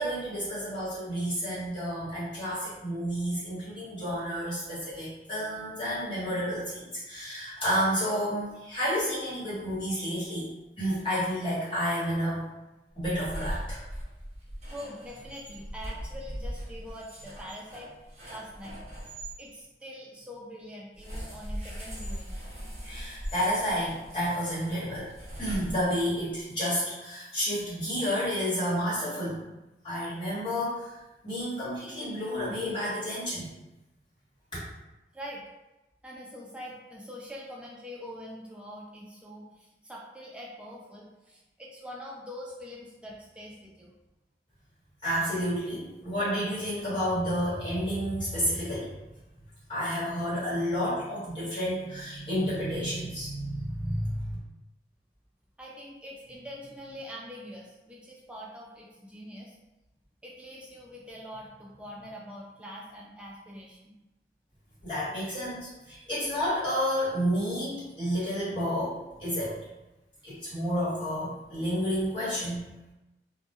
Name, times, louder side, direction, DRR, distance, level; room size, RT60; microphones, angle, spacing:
voice 1, 0.0-10.5 10.8-12.4 13.0-13.8 22.8-25.1 25.4-29.4 29.8-30.9 31.2-33.5 34.5-34.6 45.0-48.9 49.7-54.3 64.8-69.6 70.2-72.6, equal, 25° left, -11 dB, 1.1 m, -30 dB
sound 1, 12.9-19.4 20.9-26.2, equal, 40° right, 0.8 m, -40 dB
voice 2, 14.7-17.9 18.3-18.8 19.4-22.4 35.1-35.4 36.0-43.9 55.6-59.6 60.2-63.9, equal, 5° right, -4 dB, 0.3 m, -44 dB
2.1 x 2.1 x 2.9 m, 1.0 s
head